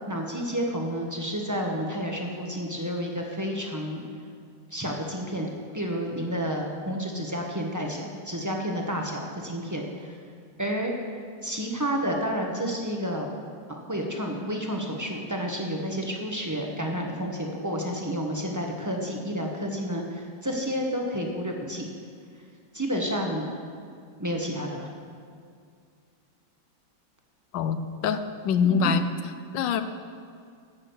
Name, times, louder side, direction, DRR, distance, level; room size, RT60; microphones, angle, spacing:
voice 1, 0.1-4.0 4.7-10.1 10.6-10.9 11.4-13.3 13.7-21.9 22.7-23.5 24.2-24.9 28.6-28.9, equal, 15° right, 0 dB, 0.7 m, -30 dB
voice 2, 27.5-29.1 29.5-29.8, left 6 dB, 75° left, 10 dB, 1.3 m, -24 dB
12.0 x 6.4 x 8.0 m, 2.2 s
omnidirectional pair, 2.2 m